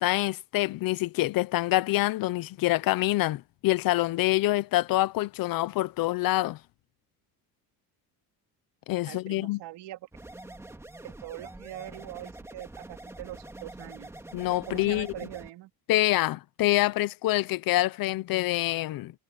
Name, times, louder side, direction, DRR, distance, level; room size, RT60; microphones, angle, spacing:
voice 1, 0.0-6.6 8.9-9.6 14.3-15.1 15.9-19.1, left 17 dB, 60° left, 0.7 m, -26 dB
voice 2, 9.1-10.1 11.0-14.1 14.7-15.7, right 15 dB, 85° right, 2.8 m, -42 dB
sound 1, 10.1-15.5, right 2 dB, 5° right, 2.1 m, -45 dB
cardioid pair, 180°, 40 cm